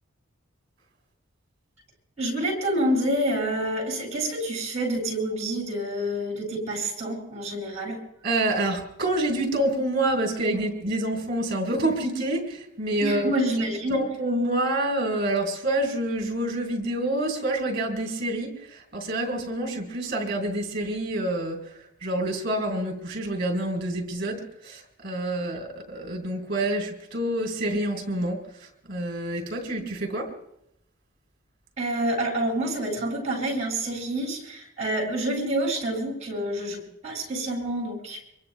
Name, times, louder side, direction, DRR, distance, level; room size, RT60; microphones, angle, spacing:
voice 1, 2.2-8.0 13.0-14.0 31.8-38.2, right 1 dB, 35° right, 0 dB, 7.0 m, -28 dB
voice 2, 8.2-13.3 13.9-21.6 22.0-28.4 28.9-30.3, right 1 dB, 50° right, 2 dB, 4.0 m, -27 dB
25.5 x 23.5 x 2.3 m, 0.77 s
head